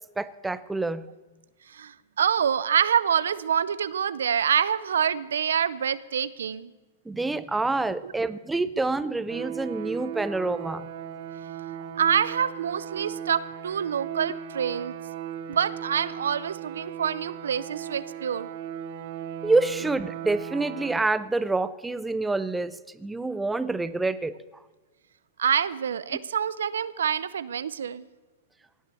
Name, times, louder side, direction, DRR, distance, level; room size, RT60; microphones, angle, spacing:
voice 1, 0.2-1.1 7.1-10.9 19.4-24.3, right 3 dB, 10° right, 15 dB, 0.5 m, -27 dB
voice 2, 1.7-6.7 8.0-8.1 12.0-14.9 15.5-18.5 25.4-28.1, right 8 dB, 85° right, 17 dB, 0.6 m, -26 dB
sound 1, 9.3-21.0, right 9 dB, 60° right, 1.0 m, -37 dB
17.5 x 7.3 x 7.0 m, 1.2 s
hypercardioid pair, 125°, 0 cm